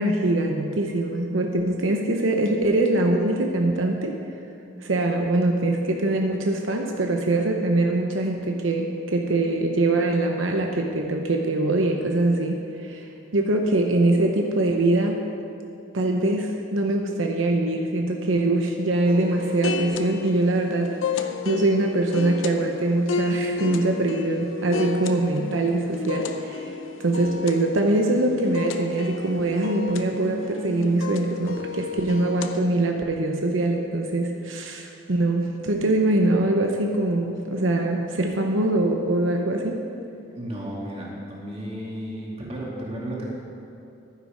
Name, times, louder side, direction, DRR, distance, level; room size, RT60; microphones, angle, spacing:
voice 1, 0.0-4.2 4.8-13.0 13.3-15.2 15.9-26.7 27.0-39.9, right 2 dB, 85° right, 2 dB, 0.9 m, -23 dB
sound 1, 19.1-32.6, left 3 dB, 80° left, 0.7 m, -32 dB
voice 2, 40.4-43.3, right 1 dB, 30° right, -5 dB, 2.5 m, -33 dB
11.5 x 9.8 x 5.1 m, 2.8 s
head